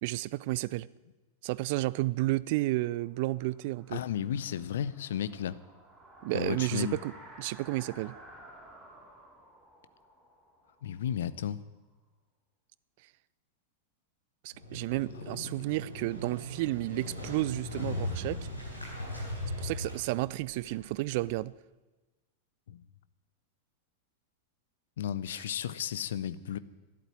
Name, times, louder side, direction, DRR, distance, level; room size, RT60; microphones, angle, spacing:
voice 1, 0.0-0.9 1.4-4.0 6.2-7.1 7.4-8.1 14.4-18.4 19.6-21.5, right 19 dB, 50° right, 0.4 m, -32 dB
sound 1, 3.0-11.7, right 1 dB, 10° right, 5.0 m, -54 dB
voice 2, 3.9-5.6 6.3-7.0 10.8-11.6 15.4-15.5 22.7-22.8 25.0-26.6, left 9 dB, 60° left, 0.7 m, -33 dB
Motorcycle, 14.5-21.3, left 1 dB, 85° left, 4.4 m, -39 dB
12.5 x 11.0 x 9.3 m
figure-of-eight pair, 90°, 0 cm